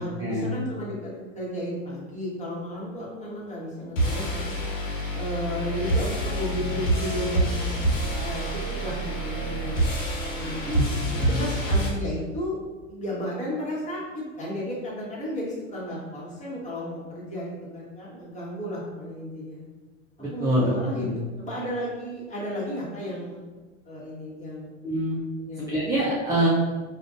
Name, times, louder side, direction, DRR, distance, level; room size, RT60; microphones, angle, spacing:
voice 1, 0.0-4.6 5.1-8.4 8.8-9.8 10.3-10.6 11.2-12.6 12.9-19.6 20.3-23.4 23.8-24.7 25.4-26.0, equal, 20° left, -6 dB, 1.4 m, -33 dB
sound 1, 4.0-11.9, right 1 dB, 75° left, 1.2 m, -27 dB
voice 2, 11.2-11.5 20.2-21.1 24.8-25.2 25.6-26.5, equal, 10° right, -7 dB, 0.6 m, -25 dB
4.9 x 2.6 x 2.5 m, 1.3 s
hypercardioid pair, 95°, 40 cm